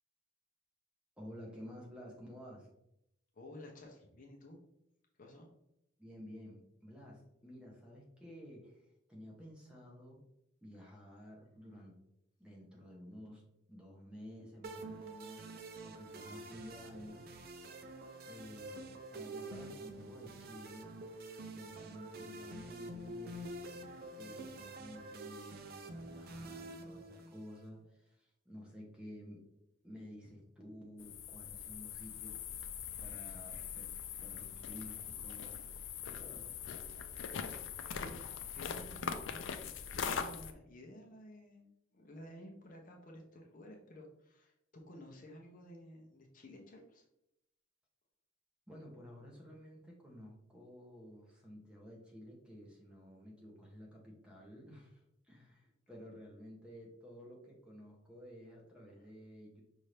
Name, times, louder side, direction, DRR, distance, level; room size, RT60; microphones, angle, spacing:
voice 1, 1.2-2.7 6.0-8.8 9.1-10.2 10.6-12.0 12.4-13.4 13.7-17.2 18.3-21.0 21.5-23.5 24.1-29.5 29.8-32.4 33.0-33.9 34.2-36.7 48.7-55.0 55.3-59.6, equal, 5° right, -2 dB, 1.0 m, -52 dB
voice 2, 3.3-4.6 5.2-5.5 37.9-38.2 38.5-39.4 39.9-47.0 59.0-59.1, left 1 dB, 45° left, 0 dB, 0.8 m, -53 dB
sound 1, 14.6-27.7, right 2 dB, 55° right, 0.5 m, -47 dB
sound 2, 31.0-40.5, left 7 dB, 80° left, 0.4 m, -42 dB
5.5 x 2.7 x 3.2 m, 0.81 s
head